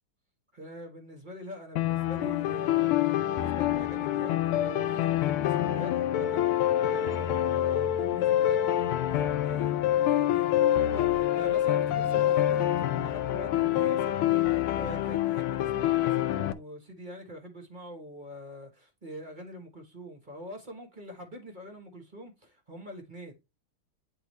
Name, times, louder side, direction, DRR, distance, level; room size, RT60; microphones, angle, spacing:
voice 1, 0.5-23.3, equal, 30° right, 1.0 m, -44 dB
sound 1, 1.8-16.5, left 12 dB, 80° left, 1.5 m, -26 dB
9.7 x 3.7 x 3.1 m
omnidirectional pair, 2.4 m